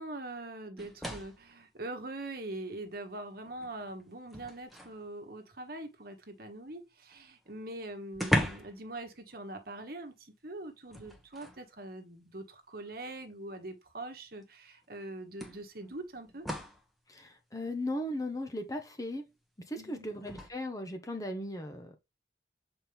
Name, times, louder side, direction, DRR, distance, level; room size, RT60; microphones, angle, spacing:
voice 1, 0.0-16.5 19.7-20.0, right 2 dB, 55° right, 1.3 m, -43 dB
sound 1, 0.8-1.5 2.9-3.0 3.4-5.0 7.1-7.2 7.5-7.6 8.1-8.9 9.1-9.4 10.9-11.6 12.8-12.9 14.4-14.5 15.4-16.9 20.2-20.5, equal, ahead, 1.1 m, -36 dB
voice 2, 17.1-19.3 19.6-22.0, left 1 dB, 20° left, 0.9 m, -37 dB
7.4 x 4.4 x 3.4 m
head